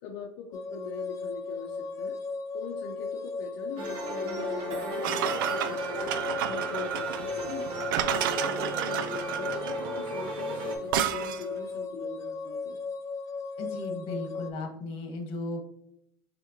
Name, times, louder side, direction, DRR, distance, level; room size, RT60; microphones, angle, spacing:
voice 1, 0.0-2.2 2.5-6.1 6.5-7.7 8.1-12.8, left 5 dB, 70° left, 1 dB, 0.6 m, -42 dB
sound 1, 0.5-14.5, left 4 dB, 30° left, 0.4 m, -36 dB
sound 2, 3.8-10.8, right 3 dB, 55° right, 1.2 m, -37 dB
sound 3, 5.0-11.6, right 10 dB, 80° right, 0.4 m, -31 dB
voice 2, 13.6-15.6, left 2 dB, 50° left, 4 dB, 1.3 m, -36 dB
5.6 x 3.5 x 2.6 m, 0.74 s
supercardioid pair, 110°, 11 cm